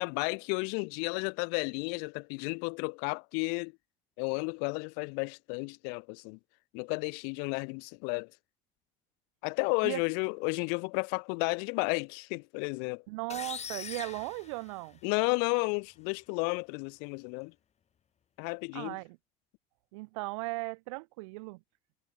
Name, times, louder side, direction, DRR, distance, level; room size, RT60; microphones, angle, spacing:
voice 1, 0.0-3.7 4.2-6.4 6.7-8.3 9.4-13.0 15.0-17.5 18.4-19.0, left 40 dB or more, 85° left, 1.1 m, -32 dB
voice 2, 13.1-15.0 18.7-19.2 19.9-21.6, right 26 dB, 90° right, 1.4 m, -37 dB
sound 1, 13.3-15.2, left 8 dB, 45° left, 2.3 m, -42 dB
supercardioid pair, 80°, 16 cm